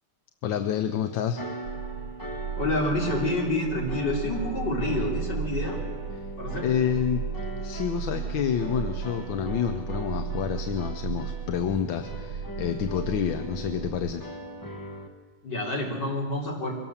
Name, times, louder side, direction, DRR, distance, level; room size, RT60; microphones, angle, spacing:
voice 1, 0.4-1.4 6.6-7.2 7.6-14.2, left 8 dB, 65° left, 7 dB, 1.6 m, -28 dB
sound 1, 1.4-15.1, equal, 10° left, 1.3 m, -40 dB
sound 2, 1.6-14.1, right 7 dB, 75° right, 1.8 m, -35 dB
voice 2, 2.6-5.8 6.4-6.7 15.4-16.7, left 2 dB, 50° left, -1 dB, 4.3 m, -28 dB
23.5 x 18.0 x 7.3 m, 1.5 s
omnidirectional pair, 2.4 m